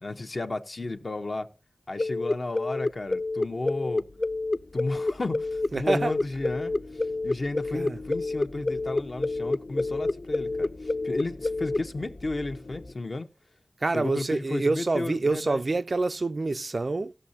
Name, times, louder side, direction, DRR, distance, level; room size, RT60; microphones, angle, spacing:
voice 1, 0.0-1.5 1.9-4.0 4.7-13.3 13.9-15.6, left 2 dB, 55° left, 1.0 m, -33 dB
sound 1, 2.0-11.8, left 2 dB, 30° left, 0.4 m, -28 dB
sound 2, 2.9-12.9, left 2 dB, 75° left, 1.5 m, -45 dB
voice 2, 5.7-6.1 7.7-8.0 13.8-17.1, right 3 dB, 55° right, 0.4 m, -27 dB
17.0 x 6.5 x 2.7 m
wide cardioid pair, 80°, 0 cm